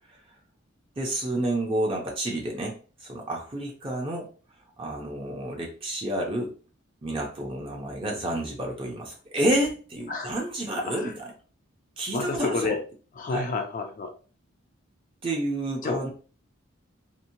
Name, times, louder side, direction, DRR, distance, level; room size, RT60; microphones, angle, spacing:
voice 1, 1.0-4.3 4.8-6.5 7.0-11.2 12.0-12.7 13.3-13.4 15.2-16.1, right 1 dB, 25° right, -1 dB, 0.5 m, -29 dB
voice 2, 12.1-12.8 13.2-14.1 15.8-16.0, left 3 dB, 40° left, 4 dB, 0.4 m, -29 dB
2.8 x 2.1 x 2.6 m, 0.37 s
head